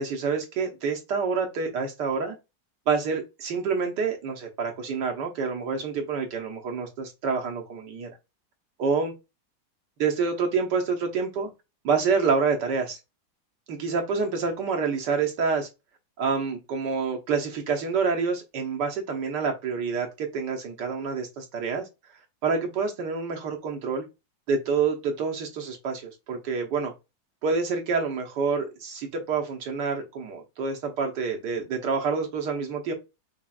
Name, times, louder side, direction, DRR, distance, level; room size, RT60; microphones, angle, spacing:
voice 1, 0.0-2.4 2.9-8.1 8.8-9.1 10.0-11.5 11.8-13.0 13.7-15.7 16.2-21.8 22.4-24.0 24.5-26.9 27.4-32.9, right 5 dB, 70° right, 1.6 m, -27 dB
5.9 x 3.1 x 2.3 m
omnidirectional pair, 2.0 m